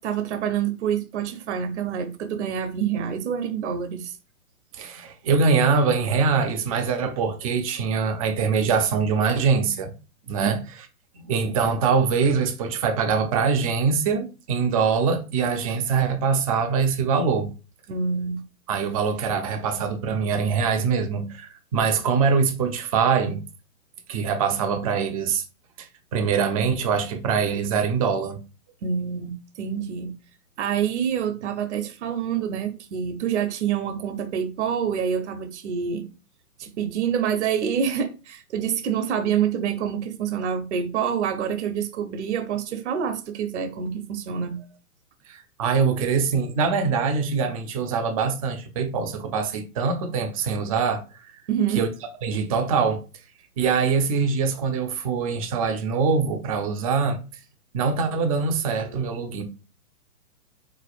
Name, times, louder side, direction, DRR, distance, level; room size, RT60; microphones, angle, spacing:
voice 1, 0.0-4.1 17.9-18.4 28.8-30.1 30.6-36.1 36.6-44.6 51.5-51.9, right 8 dB, 50° right, 0.9 m, -27 dB
voice 2, 4.7-9.9 10.3-10.6 11.1-17.5 18.7-23.4 24.1-25.4 25.8-28.4 45.3-51.3 51.7-51.9 52.2-53.0 53.6-57.2 57.7-59.4, right 5 dB, 25° right, 0.6 m, -23 dB
4.9 x 4.0 x 2.4 m
hypercardioid pair, 140°, 45 cm